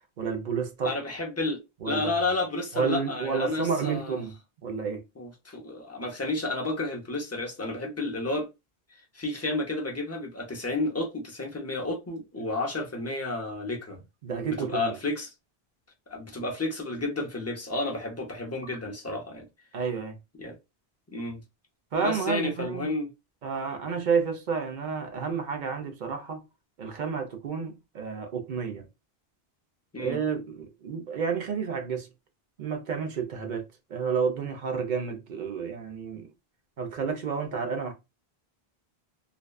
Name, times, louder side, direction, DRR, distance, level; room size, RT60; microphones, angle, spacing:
voice 1, 0.2-0.9 1.8-2.1 2.7-4.3 4.6-5.0 14.2-14.9 19.7-20.2 21.9-22.9 23.4-26.4 26.8-28.8 30.0-32.1 32.6-33.6 33.9-36.3 36.8-37.9, right 6 dB, 55° right, 0.7 m, -30 dB
voice 2, 0.8-4.2 5.2-8.5 9.1-14.0 14.5-15.3 16.1-19.5 20.4-20.6 21.1-21.4 22.0-23.1 29.9-30.2, left 2 dB, 20° left, 0.5 m, -31 dB
2.6 x 2.2 x 2.2 m
omnidirectional pair, 1.0 m